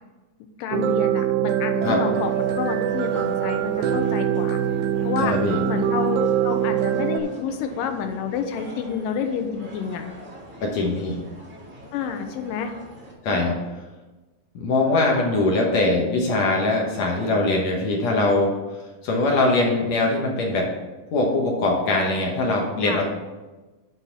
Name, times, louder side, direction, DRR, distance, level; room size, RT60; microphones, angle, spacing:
voice 1, 0.6-4.6 5.0-5.3 5.7-6.2 6.4-10.1 11.9-12.7 13.3-13.5 22.9-23.0, left 7 dB, 85° left, 6 dB, 2.4 m, -29 dB
sound 1, 0.7-7.2, right 10 dB, 80° right, 1.8 m, -23 dB
sound 2, 2.0-13.1, right 1 dB, 35° right, 0.7 m, -42 dB
voice 2, 5.2-5.6 10.6-11.2 13.2-13.6 14.6-18.5 19.0-20.7 21.1-23.0, left 2 dB, 65° left, 0 dB, 2.1 m, -22 dB
9.6 x 4.1 x 5.8 m, 1.2 s
omnidirectional pair, 3.9 m